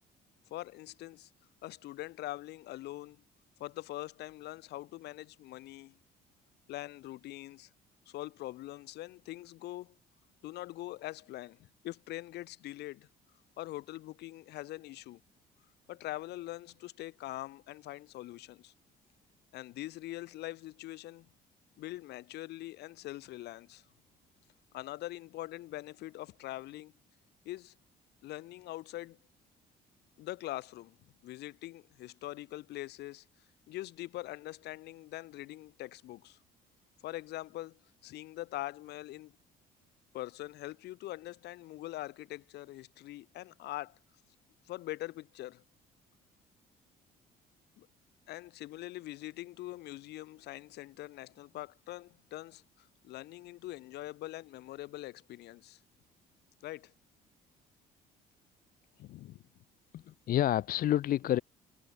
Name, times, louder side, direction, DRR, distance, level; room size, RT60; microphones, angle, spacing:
voice 1, 0.5-1.3 1.6-3.2 3.6-6.0 6.7-7.7 8.1-10.0 10.4-13.1 13.6-15.2 15.9-18.7 19.5-21.3 21.8-23.9 24.7-26.9 27.5-27.7 28.2-29.2 30.2-31.0 31.2-33.2 33.7-36.4 37.0-39.4 40.1-44.0 44.7-45.6 47.8-47.9 48.3-55.8 56.6-56.9 59.0-59.4, left 16 dB, 80° left, 5.2 m, -43 dB
voice 2, 59.9-61.4, left 12 dB, 60° left, 1.1 m, -29 dB
cardioid pair, 110°, 17 cm